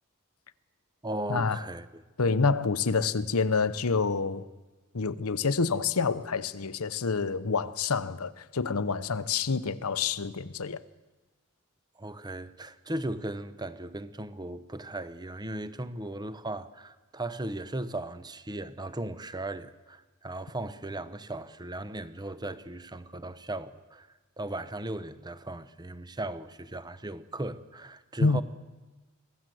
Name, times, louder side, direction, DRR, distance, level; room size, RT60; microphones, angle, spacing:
voice 1, 1.0-2.0 12.0-24.1 24.4-28.4, right 1 dB, 20° right, 0.9 m, -37 dB
voice 2, 2.2-4.4 4.9-10.8 28.2-28.4, left 4 dB, 85° left, 0.9 m, -27 dB
25.0 x 17.5 x 7.8 m
head